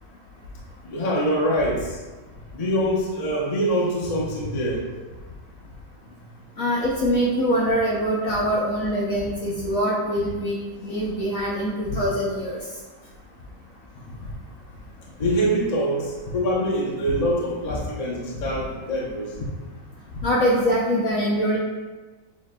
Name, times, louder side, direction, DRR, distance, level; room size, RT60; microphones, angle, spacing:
voice 1, 0.8-2.0 2.5-4.9 15.2-19.3, equal, 40° left, -4 dB, 0.5 m, -24 dB
voice 2, 6.6-12.6 17.7-17.8 20.2-21.6, equal, 65° left, -4 dB, 0.9 m, -23 dB
7.2 x 2.9 x 2.2 m, 1.3 s
omnidirectional pair, 2.0 m